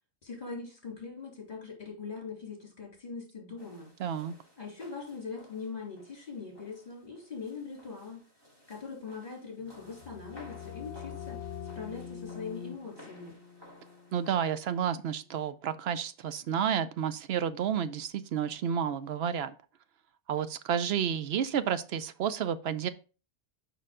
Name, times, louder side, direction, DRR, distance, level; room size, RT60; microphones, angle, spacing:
voice 1, 0.2-3.9 4.6-8.2 8.7-11.4 11.7-13.4, left 5 dB, 30° left, 3.0 m, -41 dB
sound 1, 3.6-14.3, equal, 20° right, 1.9 m, -56 dB
voice 2, 4.0-4.3 14.1-19.5 20.3-22.9, right 8 dB, 70° right, 0.8 m, -31 dB
sound 2, 9.7-15.3, left 8 dB, 75° left, 0.9 m, -45 dB
6.6 x 5.3 x 3.6 m
omnidirectional pair, 1.2 m